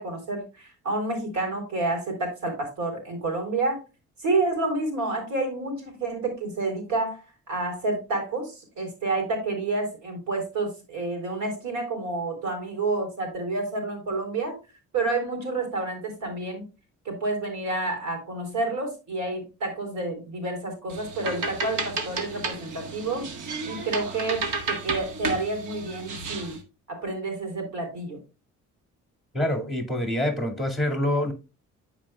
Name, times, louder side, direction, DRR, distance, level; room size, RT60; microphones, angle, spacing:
voice 1, 0.0-3.8 4.2-7.2 7.5-14.5 14.9-16.6 17.1-23.2 23.6-24.4 24.7-26.6 26.9-28.2, right 2 dB, 65° right, 3.9 m, -29 dB
sound 1, 20.9-26.6, right 3 dB, 90° right, 1.7 m, -32 dB
voice 2, 29.3-31.3, left 1 dB, ahead, 2.2 m, -26 dB
14.5 x 4.9 x 2.3 m
cardioid pair, 90°, 30 cm